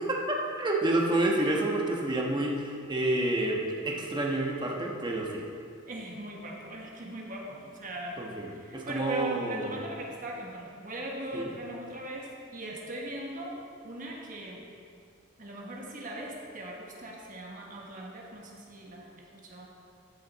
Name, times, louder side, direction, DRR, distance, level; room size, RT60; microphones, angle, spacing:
voice 1, 0.0-5.4 8.2-9.8 11.3-11.5, right 1 dB, 20° right, -1 dB, 1.2 m, -29 dB
voice 2, 5.9-8.3 8.6-13.6 13.8-14.6 15.4-19.7, right 1 dB, 40° right, -1 dB, 1.2 m, -39 dB
13.5 x 7.6 x 4.1 m, 2.4 s
head